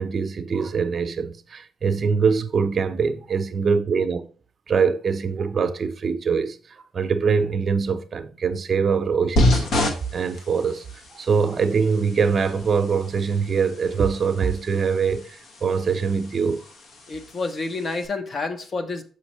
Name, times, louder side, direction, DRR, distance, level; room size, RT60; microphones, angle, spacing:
voice 1, 0.0-4.3 4.7-9.7 10.1-10.8 11.1-16.6, right 5 dB, 45° right, 0.6 m, -23 dB
sound 1, 9.4-18.1, left 1 dB, 70° left, 1.2 m, -29 dB
voice 2, 17.1-19.0, left 3 dB, 40° left, 0.8 m, -29 dB
6.3 x 5.4 x 3.1 m
cardioid pair, 90°, 0 cm